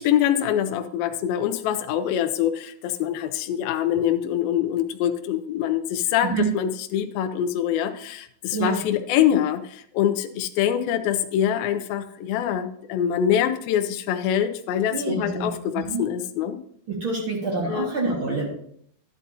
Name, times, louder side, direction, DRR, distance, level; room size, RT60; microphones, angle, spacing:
voice 1, 0.0-16.6 17.7-17.9, left 10 dB, 80° left, 7 dB, 2.2 m, -24 dB
voice 2, 14.9-15.5 15.8-16.0 16.9-18.5, right 3 dB, 55° right, -2 dB, 1.4 m, -26 dB
12.0 x 10.0 x 2.7 m, 0.66 s
omnidirectional pair, 4.8 m